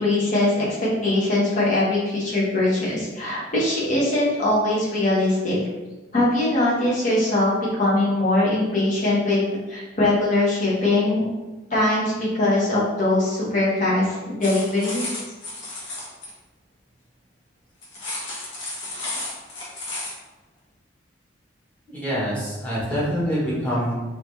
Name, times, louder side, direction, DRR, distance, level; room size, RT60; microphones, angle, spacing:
voice 1, 0.0-5.6 6.1-9.4 9.7-11.3 11.7-15.2, left 2 dB, 40° left, -8 dB, 1.3 m, -21 dB
sound 1, 14.4-16.3 17.8-20.2, left 2 dB, 70° left, 1.3 m, -33 dB
voice 2, 21.9-23.9, equal, 10° left, -8 dB, 1.4 m, -25 dB
4.0 x 2.8 x 3.3 m, 1.1 s
head